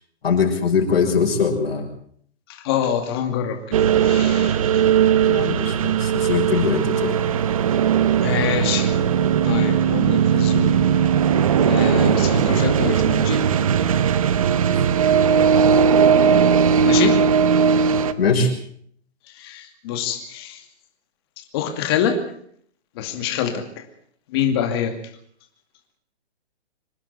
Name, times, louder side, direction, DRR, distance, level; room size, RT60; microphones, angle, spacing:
voice 1, 0.2-1.9 5.3-7.2 18.2-18.5, left 5 dB, 60° left, 3 dB, 6.3 m, -21 dB
voice 2, 2.5-4.8 8.2-9.1 9.4-10.8 11.6-13.4 16.8-17.2 19.3-20.6 21.5-22.2 23.0-23.8 24.3-25.0, left 8 dB, 20° left, 6 dB, 2.5 m, -26 dB
sound 1, 3.7-18.1, right 7 dB, 30° right, 1.0 m, -18 dB
26.0 x 11.5 x 9.6 m, 0.63 s
hypercardioid pair, 175°, 33 cm